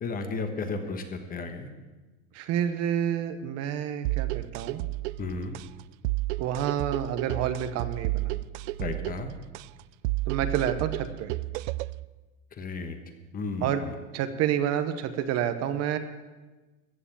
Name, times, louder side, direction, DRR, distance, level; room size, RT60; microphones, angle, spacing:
voice 1, 0.0-1.7 5.2-5.6 8.8-9.3 12.6-13.0 13.3-13.9, left 3 dB, 25° left, 7 dB, 1.2 m, -33 dB
voice 2, 2.3-4.8 6.4-8.3 10.3-11.3 13.6-13.8 14.1-16.0, right 9 dB, 45° right, 10 dB, 0.9 m, -29 dB
sound 1, 4.0-12.0, right 19 dB, 65° right, 0.5 m, -32 dB
14.5 x 6.9 x 8.8 m, 1.2 s
supercardioid pair, 150°, 37 cm